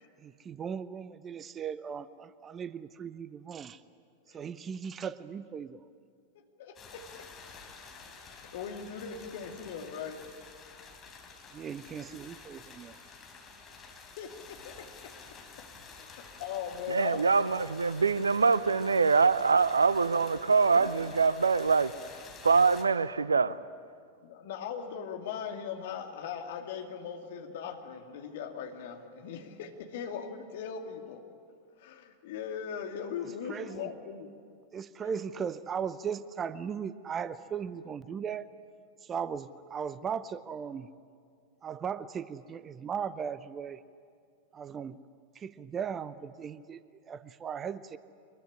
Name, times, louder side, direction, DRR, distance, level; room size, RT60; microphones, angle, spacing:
voice 1, 0.2-3.8 4.3-5.8 11.5-13.0 33.2-33.9 34.7-38.5 39.0-40.9 41.6-43.8 44.5-45.0 45.3-48.0, right 7 dB, 25° right, 0.7 m, -37 dB
voice 2, 6.6-7.0 8.2-10.2 14.2-15.1 15.9-17.5 20.7-20.9 24.2-31.2 31.8-34.3, left 7 dB, 55° left, 2.4 m, -39 dB
sound 1, 6.7-22.8, left 5 dB, 25° left, 3.8 m, -50 dB
voice 3, 16.9-21.9 22.4-23.6, right 5 dB, 75° right, 0.6 m, -24 dB
23.5 x 21.5 x 9.9 m
figure-of-eight pair, 90°, 0 cm